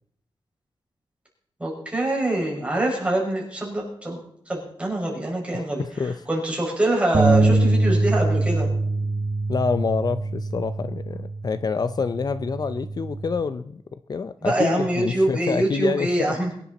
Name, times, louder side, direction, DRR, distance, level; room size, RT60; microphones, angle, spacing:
voice 1, 1.6-8.7 14.4-16.5, right 1 dB, 15° right, -2 dB, 5.5 m, -25 dB
voice 2, 5.5-6.2 9.5-13.8 14.1-16.3, left 5 dB, 45° left, 12 dB, 0.5 m, -27 dB
sound 1, 7.1-13.4, right 2 dB, 35° right, 1.2 m, -24 dB
22.5 x 11.0 x 4.1 m, 0.69 s
wide cardioid pair, 160°, 10 cm